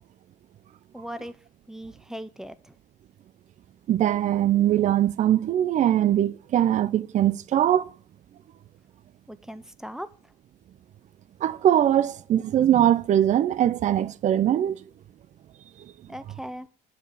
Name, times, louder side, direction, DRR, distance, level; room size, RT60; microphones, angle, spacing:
voice 1, 0.9-1.4 1.7-2.7 9.3-10.1 16.1-16.7, equal, 5° right, 0.6 m, -38 dB
voice 2, 3.9-7.9 11.4-14.8, right 11 dB, 45° right, 0.5 m, -21 dB
7.3 x 5.1 x 5.3 m
cardioid pair, 110°, 17 cm